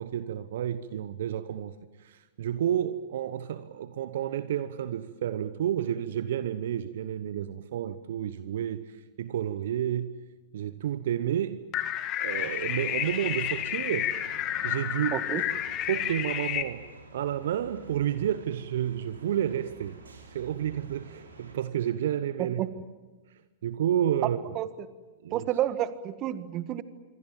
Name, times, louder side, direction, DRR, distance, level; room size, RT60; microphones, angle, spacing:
voice 1, 0.0-1.7 2.0-10.2 10.5-11.6 12.2-14.1 14.6-15.2 15.9-16.9 17.1-20.0 20.3-22.6 23.6-24.4 25.2-25.4, right 10 dB, 60° right, 1.0 m, -30 dB
sound 1, 11.7-16.6, left 11 dB, 35° left, 2.0 m, -31 dB
sound 2, 12.3-21.5, right 3 dB, 80° right, 5.5 m, -49 dB
voice 2, 15.1-15.4 22.4-22.7 24.2-24.3 24.5-24.7 25.3-26.8, right 12 dB, 35° right, 1.6 m, -30 dB
27.0 x 23.5 x 7.5 m
figure-of-eight pair, 105°, 0 cm